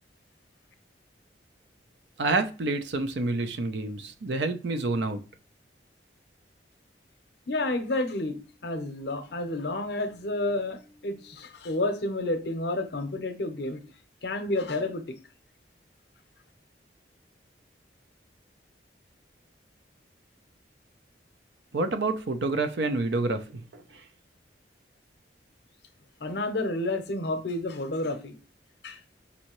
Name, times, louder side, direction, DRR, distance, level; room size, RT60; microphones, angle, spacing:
voice 1, 2.2-5.2 21.7-24.0, right 3 dB, 75° right, 0.5 m, -28 dB
voice 2, 7.5-13.8 14.2-15.2 26.2-28.3 28.8-29.0, left 2 dB, 65° left, 0.7 m, -30 dB
5.4 x 2.7 x 3.0 m
head